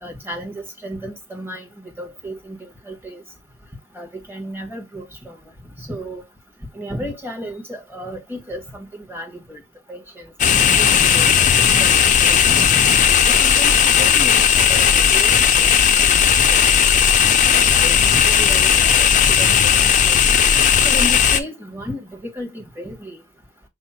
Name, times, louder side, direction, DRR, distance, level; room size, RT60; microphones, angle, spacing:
voice 1, 0.0-3.2 3.9-5.4 5.8-6.2 6.7-9.6 9.9-10.3 10.8-12.6 13.3-16.9 17.5-20.3 20.8-23.2, equal, 10° right, 1.2 m, -34 dB
sound 1, 10.4-21.4, left 8 dB, 35° left, 0.5 m, -15 dB
5.3 x 2.0 x 4.2 m
head